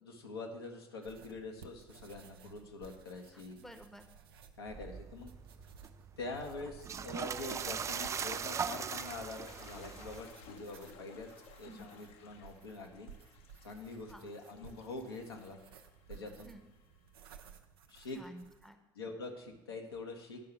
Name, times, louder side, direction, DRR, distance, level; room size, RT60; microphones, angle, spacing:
voice 1, 0.0-3.6 4.6-5.3 6.2-11.3 11.6-13.1 13.6-15.6 16.1-16.5 17.9-18.2 18.9-20.4, left 3 dB, 75° left, 2 dB, 1.1 m, -45 dB
sound 1, 1.0-18.7, right 6 dB, 70° right, 0.6 m, -58 dB
voice 2, 3.3-4.1 11.6-11.9 14.1-14.3 16.4-16.6 18.1-18.8, right 1 dB, 5° left, 7 dB, 0.9 m, -52 dB
sound 2, 4.7-10.2, right 6 dB, 25° right, 0.3 m, -40 dB
Toilet flush, 8.5-17.1, left 6 dB, 50° left, 0.9 m, -59 dB
9.1 x 5.6 x 6.9 m, 1.0 s
figure-of-eight pair, 55°, 13 cm